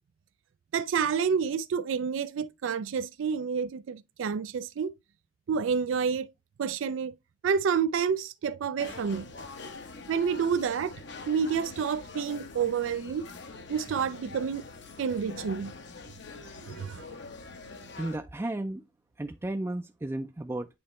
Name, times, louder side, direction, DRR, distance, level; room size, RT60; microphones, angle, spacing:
voice 1, 0.7-4.9 5.5-6.3 6.6-7.1 7.4-9.3 10.1-10.9 11.3-13.3 13.7-14.6 15.0-15.7 16.6-17.1, right 6 dB, 90° right, 0.4 m, -29 dB
sound 1, 8.8-18.2, left 3 dB, 65° left, 1.0 m, -44 dB
voice 2, 18.0-18.8 19.2-20.7, right 1 dB, 15° right, 0.4 m, -33 dB
8.7 x 3.0 x 4.2 m
head